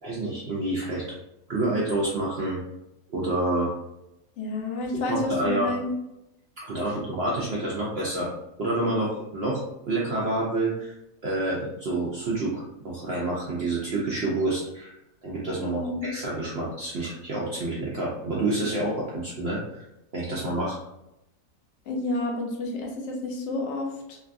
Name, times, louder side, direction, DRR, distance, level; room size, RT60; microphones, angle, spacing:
voice 1, 0.0-1.0 1.5-2.6 3.1-3.7 5.1-5.7 6.6-8.3 8.6-10.9 11.2-14.9 15.2-19.9 20.1-20.8, right 2 dB, 65° right, -5 dB, 0.6 m, -28 dB
voice 2, 4.4-5.9 15.6-16.1 21.9-24.2, left 2 dB, 60° left, 0 dB, 0.8 m, -30 dB
3.1 x 2.3 x 2.5 m, 0.85 s
omnidirectional pair, 1.7 m